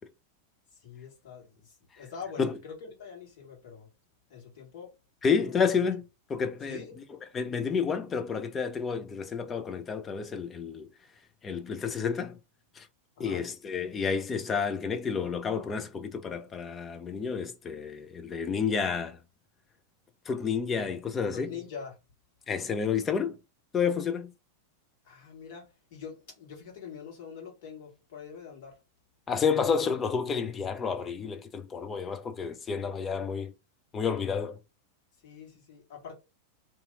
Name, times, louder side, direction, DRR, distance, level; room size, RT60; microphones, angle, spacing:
voice 1, 0.7-3.9 4.3-4.9 5.4-5.6 6.6-6.9 13.2-13.4 21.3-22.0 25.0-28.8 35.2-36.1, left 6 dB, 50° left, 1.6 m, -44 dB
voice 2, 5.2-6.0 6.3-6.8 7.3-10.9 11.4-12.4 12.8-12.9 13.2-19.2 20.3-21.5 22.5-23.4 23.7-24.3 29.3-33.5 33.9-34.6, left 6 dB, 20° left, 0.5 m, -30 dB
2.8 x 2.5 x 3.7 m
figure-of-eight pair, 90°, 0 cm